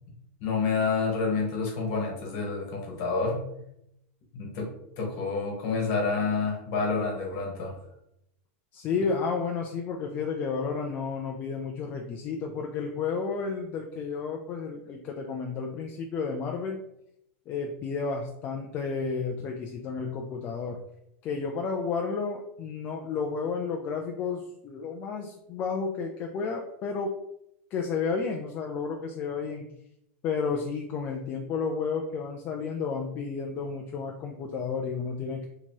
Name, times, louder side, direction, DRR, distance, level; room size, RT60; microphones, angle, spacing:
voice 1, 0.4-3.4 4.3-4.7 5.0-7.8, left 4 dB, 40° left, 0 dB, 1.2 m, -28 dB
voice 2, 8.7-16.8 17.5-20.8 21.2-27.1 27.7-29.7 30.2-35.5, left 5 dB, 25° left, 2 dB, 0.3 m, -32 dB
2.8 x 2.8 x 4.4 m, 0.80 s
supercardioid pair, 165°, 7 cm